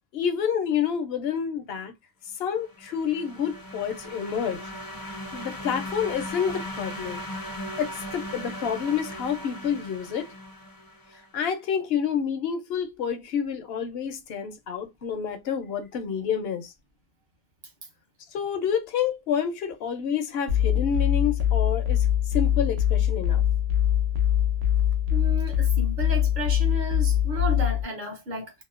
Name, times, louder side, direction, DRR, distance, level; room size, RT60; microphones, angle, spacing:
voice 1, 0.1-1.9 2.4-4.6 5.3-7.2 7.8-10.3 11.3-16.7 18.3-22.1 22.3-23.4, left 7 dB, 75° left, 0.8 m, -28 dB
sound 1, 2.6-11.2, equal, 30° left, 0.4 m, -38 dB
sound 2, 20.5-27.8, left 10 dB, 85° right, 0.9 m, -23 dB
voice 2, 25.1-28.5, right 2 dB, 50° right, 0.7 m, -33 dB
2.7 x 2.1 x 2.3 m
omnidirectional pair, 1.1 m